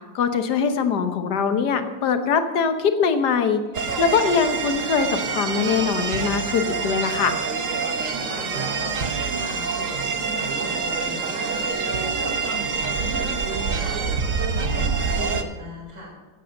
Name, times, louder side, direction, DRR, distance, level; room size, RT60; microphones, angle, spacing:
voice 1, 0.1-3.6 4.0-7.3, left 6 dB, 60° left, 8 dB, 1.6 m, -22 dB
sound 1, 3.7-15.4, right 5 dB, 50° right, 1.2 m, -26 dB
voice 2, 8.0-16.1, right 1 dB, 70° right, -3 dB, 5.4 m, -37 dB
16.5 x 8.4 x 6.5 m, 1.2 s
omnidirectional pair, 2.1 m